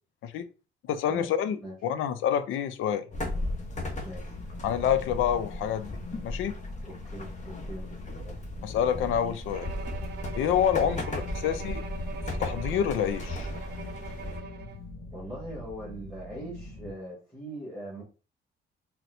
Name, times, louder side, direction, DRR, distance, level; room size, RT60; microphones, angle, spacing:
voice 1, 0.9-3.0 4.6-6.5 8.6-9.7 10.3-11.0 11.4-11.8 12.3-13.5, left 9 dB, 80° left, 0.4 m, -27 dB
sound 1, 3.1-14.4, left 1 dB, 35° left, 0.9 m, -36 dB
sound 2, 3.2-16.9, left 3 dB, 60° left, 1.1 m, -44 dB
voice 2, 4.0-4.4 6.8-7.9 8.2-8.4 10.8-11.0 15.1-18.0, right 1 dB, 5° left, 1.5 m, -41 dB
Bowed string instrument, 9.5-14.9, right 6 dB, 55° right, 0.5 m, -43 dB
4.0 x 2.1 x 2.6 m
cardioid pair, 90°, 20 cm